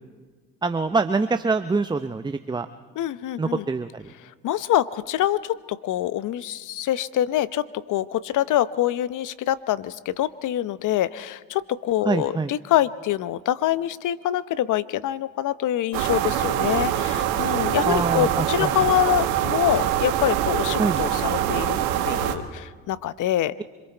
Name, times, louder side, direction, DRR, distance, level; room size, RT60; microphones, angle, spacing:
voice 1, 0.6-2.7 3.4-4.1 12.0-12.5 17.9-18.9 20.8-21.0, right 3 dB, 10° right, 10 dB, 0.7 m, -25 dB
voice 2, 3.0-3.6 4.4-21.8 22.0-23.5, left 12 dB, 60° left, 16 dB, 0.8 m, -25 dB
sound 1, 15.9-22.3, right 11 dB, 80° right, 1.4 m, -24 dB
26.5 x 22.0 x 4.5 m, 1.5 s
supercardioid pair, 70°, 36 cm